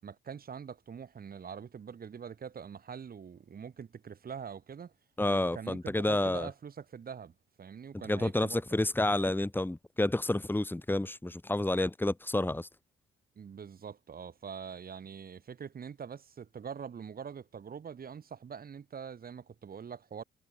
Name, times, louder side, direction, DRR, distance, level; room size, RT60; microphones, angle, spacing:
voice 1, 0.0-4.9 5.3-7.3 7.6-8.6 13.4-20.2, right 7 dB, 50° right, 7.0 m, -44 dB
voice 2, 5.2-6.5 8.1-12.7, left 1 dB, 10° left, 4.5 m, -29 dB
cardioid pair, 90°, 20 cm